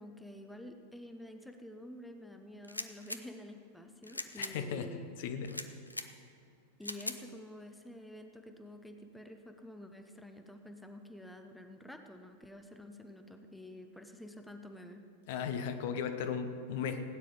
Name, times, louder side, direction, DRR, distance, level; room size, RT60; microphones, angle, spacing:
voice 1, 0.0-5.1 6.8-15.1, left 1 dB, 5° left, 6 dB, 0.9 m, -49 dB
sound 1, 2.6-3.2 4.0-4.5 5.4-6.1 6.8-7.2, left 1 dB, 85° left, 0.6 m, -40 dB
voice 2, 4.4-5.6 15.3-17.0, left 6 dB, 50° left, 7 dB, 1.0 m, -36 dB
17.0 x 9.5 x 5.0 m, 2.6 s
figure-of-eight pair, 90°, 0 cm